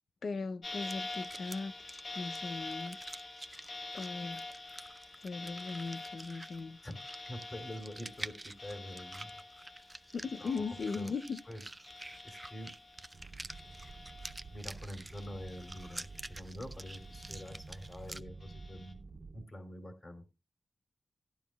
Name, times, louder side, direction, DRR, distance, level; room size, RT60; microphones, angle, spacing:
voice 1, 0.2-3.0 3.9-4.4 5.2-6.8 10.1-11.4, left 4 dB, 85° left, 0.5 m, -38 dB
sound 1, 0.6-13.2 13.5-14.7 15.1-16.3 16.8-17.8 18.4-18.9, left 2 dB, 70° left, 1.8 m, -47 dB
sound 2, 0.7-18.2, right 2 dB, 20° right, 0.5 m, -50 dB
voice 2, 7.3-9.3 10.4-11.1 11.5-11.6 12.2-12.7 14.5-19.0 19.3-20.2, equal, 35° left, 2.9 m, -46 dB
sound 3, 13.1-19.4, right 3 dB, 75° right, 1.8 m, -50 dB
14.5 x 11.0 x 2.3 m
wide cardioid pair, 90°, 0 cm